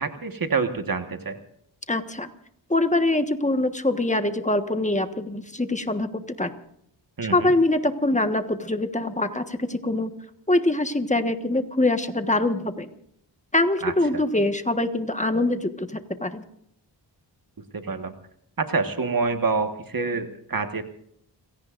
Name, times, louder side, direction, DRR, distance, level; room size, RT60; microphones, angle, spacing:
voice 1, 0.0-1.4 7.2-7.5 13.8-14.2 17.7-18.1 18.6-20.8, right 4 dB, 50° right, 7 dB, 1.7 m, -27 dB
voice 2, 1.9-2.3 2.7-6.5 7.3-10.1 10.5-12.9 13.5-16.4, left 2 dB, 15° left, 7 dB, 1.4 m, -24 dB
30.0 x 17.5 x 2.6 m, 0.70 s
wide cardioid pair, 75°, 43 cm